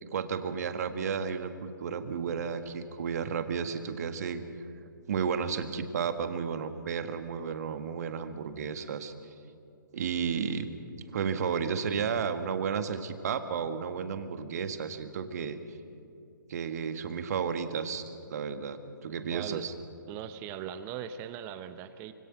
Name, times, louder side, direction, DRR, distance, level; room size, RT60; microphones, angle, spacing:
voice 1, 0.0-4.4 5.1-9.1 9.9-10.7 11.1-15.6 16.5-18.0 18.3-19.7, right 6 dB, 50° right, 8 dB, 1.7 m, -32 dB
voice 2, 19.3-19.7 20.1-22.1, right 9 dB, 20° right, 11 dB, 0.8 m, -39 dB
25.5 x 24.0 x 6.1 m, 2.6 s
figure-of-eight pair, 135°, 11 cm